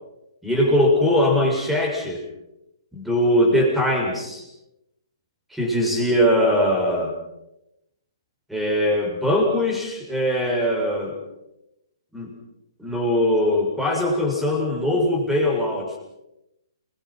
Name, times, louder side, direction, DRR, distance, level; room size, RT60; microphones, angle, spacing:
voice 1, 0.4-2.3 2.9-4.4 5.5-7.1 8.5-11.2 12.1-12.3 12.8-16.0, left 1 dB, 5° right, 0 dB, 7.0 m, -21 dB
29.5 x 23.5 x 5.9 m, 0.88 s
figure-of-eight pair, 120°, 2 cm